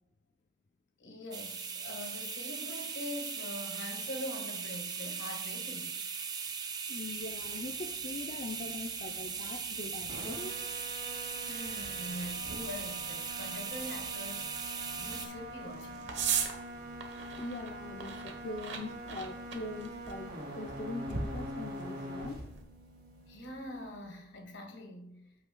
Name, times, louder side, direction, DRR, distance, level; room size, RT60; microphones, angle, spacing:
voice 1, 1.0-6.2 11.5-16.1 23.3-25.2, left 1 dB, 80° left, 4 dB, 1.6 m, -43 dB
sound 1, 1.3-15.3, right 6 dB, 20° right, 0.5 m, -39 dB
voice 2, 6.9-10.6 17.4-22.6, left 2 dB, 40° left, 4 dB, 0.5 m, -42 dB
sound 2, 7.2-24.4, right 1 dB, 55° right, 2.4 m, -45 dB
sound 3, 11.7-22.6, right 6 dB, 80° right, 1.1 m, -41 dB
13.0 x 5.6 x 2.3 m, 0.76 s
head